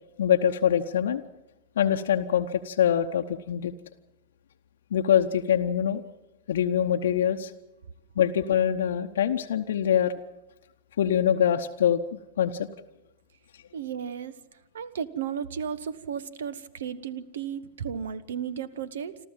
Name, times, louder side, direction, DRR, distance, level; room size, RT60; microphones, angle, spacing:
voice 1, 0.2-1.2 1.8-3.7 4.9-6.0 6.5-7.5 8.2-10.1 11.0-12.7, left 9 dB, 65° left, 5 dB, 0.9 m, -24 dB
voice 2, 13.7-14.4 14.7-19.2, right 8 dB, 65° right, 18 dB, 1.1 m, -34 dB
27.0 x 13.5 x 7.4 m, 0.98 s
figure-of-eight pair, 95°, 0 cm